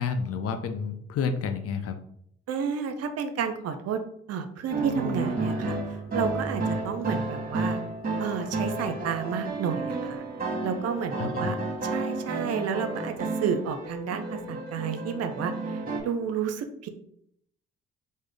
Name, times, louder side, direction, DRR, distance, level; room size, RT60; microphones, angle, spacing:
voice 1, 0.0-2.0 11.1-11.6, left 5 dB, 55° left, 8 dB, 0.5 m, -30 dB
voice 2, 2.5-4.0 4.3-5.8 6.1-7.8 8.2-10.2 10.6-16.9, right 7 dB, 55° right, 8 dB, 0.5 m, -31 dB
sound 1, 4.7-16.0, right 2 dB, 30° right, 1.2 m, -31 dB
3.6 x 2.1 x 3.3 m, 0.69 s
hypercardioid pair, 45°, 29 cm